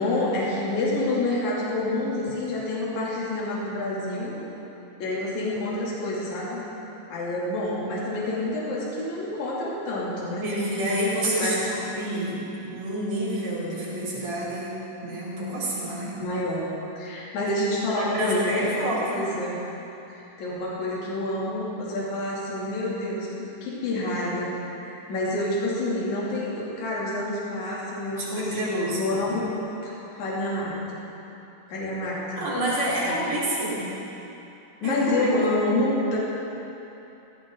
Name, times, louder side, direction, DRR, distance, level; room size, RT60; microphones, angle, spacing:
voice 1, 0.0-4.4 5.0-6.6 7.1-10.5 11.4-11.6 16.2-16.6 17.0-19.6 20.1-24.5 24.8-30.8 31.7-32.5 33.0-33.1 34.8-36.2, left 1 dB, 50° left, -7 dB, 4.1 m, -28 dB
voice 2, 10.4-12.4 12.6-14.7 15.0-16.2 17.9-19.2 28.2-29.0 32.4-33.9 34.8-35.3, right 1 dB, 15° right, -9 dB, 4.2 m, -28 dB
19.0 x 15.5 x 3.9 m, 3.0 s
omnidirectional pair, 4.6 m